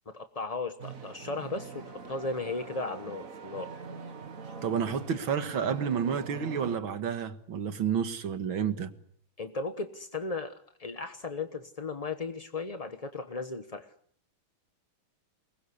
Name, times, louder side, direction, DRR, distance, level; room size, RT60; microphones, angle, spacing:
voice 1, 0.1-3.7 9.4-13.9, left 3 dB, 25° left, 0.9 m, -36 dB
sound 1, 0.8-6.8, right 5 dB, 45° right, 1.9 m, -43 dB
voice 2, 4.6-8.9, right 7 dB, 80° right, 2.4 m, -30 dB
28.0 x 21.0 x 8.4 m
omnidirectional pair, 2.2 m